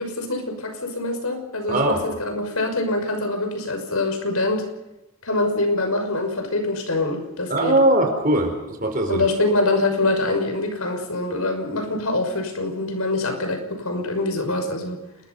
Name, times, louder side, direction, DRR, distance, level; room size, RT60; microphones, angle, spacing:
voice 1, 0.0-4.6 5.2-7.8 9.1-15.0, left 2 dB, 80° left, 6 dB, 6.0 m, -24 dB
voice 2, 1.7-2.0 7.5-9.2, right 1 dB, 40° right, 3 dB, 4.4 m, -20 dB
28.5 x 21.5 x 5.5 m, 0.98 s
head